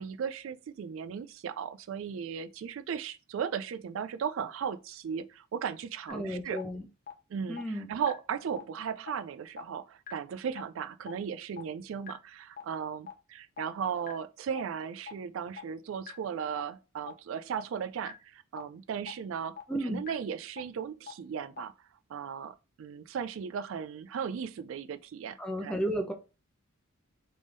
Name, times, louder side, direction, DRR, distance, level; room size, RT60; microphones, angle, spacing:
voice 1, 0.0-6.6 7.3-21.7 22.1-25.8, right 7 dB, 70° right, 0.3 m, -36 dB
sound 1, 6.1-6.2 6.6-6.7 7.1-7.2 7.6-7.7 8.1-8.2 8.6-8.7 9.1-9.2 9.6-9.7 10.1-10.2 10.6-10.7 11.1-11.2 11.6-11.7 12.1-12.2 12.6-12.7 13.1-13.2 13.6-13.7 14.1-14.2 14.6-14.7 15.1-15.2 15.6-15.7 16.1-16.2 16.6-16.7 17.1-17.2 17.6-17.7 18.1-18.2 18.6-18.7 19.1-19.2 19.6-19.7 20.1-20.2 20.6-20.7 21.1-21.2 21.6-21.7, left 7 dB, 45° left, 0.7 m, -41 dB
voice 2, 6.1-6.8 7.5-7.9 19.7-20.1 25.4-26.1, equal, 5° left, 0.7 m, -33 dB
3.5 x 3.4 x 3.8 m
head